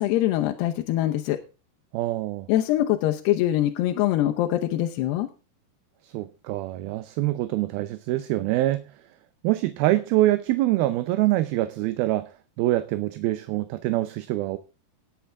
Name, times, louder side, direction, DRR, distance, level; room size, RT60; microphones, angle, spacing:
voice 1, 0.0-1.4 2.5-5.3, left 13 dB, 85° left, 3.0 m, -23 dB
voice 2, 1.9-2.5 6.0-8.9 9.4-12.3 12.6-14.6, right 16 dB, 75° right, 2.5 m, -25 dB
18.5 x 8.4 x 3.5 m
omnidirectional pair, 4.7 m